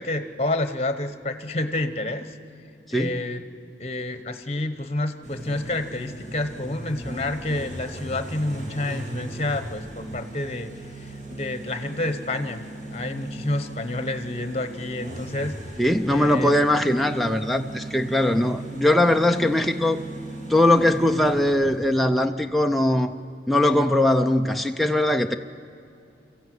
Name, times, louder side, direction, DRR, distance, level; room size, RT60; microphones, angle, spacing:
voice 1, 0.0-2.4 2.9-3.4 3.8-10.7 11.0-12.6 12.9-15.5 16.1-16.5, left 2 dB, 35° left, 10 dB, 1.0 m, -29 dB
voice 2, 2.9-3.2 15.8-20.0 20.5-23.1 23.5-25.4, left 1 dB, ahead, 4 dB, 0.5 m, -21 dB
sound 1, 5.2-22.0, right 1 dB, 45° right, 3.1 m, -38 dB
24.5 x 15.0 x 9.4 m, 2.5 s
head